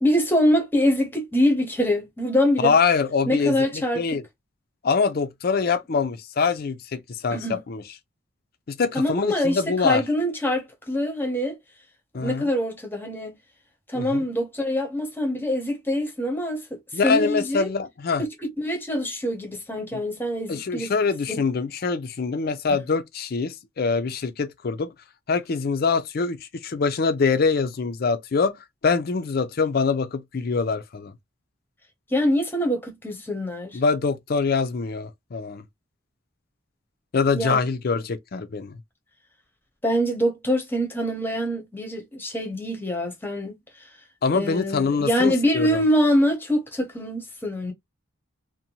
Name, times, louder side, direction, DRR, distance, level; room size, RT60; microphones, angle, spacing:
voice 1, 0.0-2.7 3.3-4.2 7.3-7.6 8.9-11.6 12.2-13.4 13.9-17.7 18.2-20.9 21.3-21.4 32.1-33.8 37.4-37.6 39.8-43.9 44.3-47.7, equal, 10° left, 0.7 m, -24 dB
voice 2, 2.6-4.2 4.8-7.8 8.7-10.0 12.1-12.5 14.0-14.3 16.9-18.2 20.5-24.9 25.3-28.6 28.8-31.1 33.7-35.6 37.1-38.8 44.2-45.8, left 4 dB, 50° left, 0.4 m, -24 dB
2.6 x 2.1 x 2.8 m
head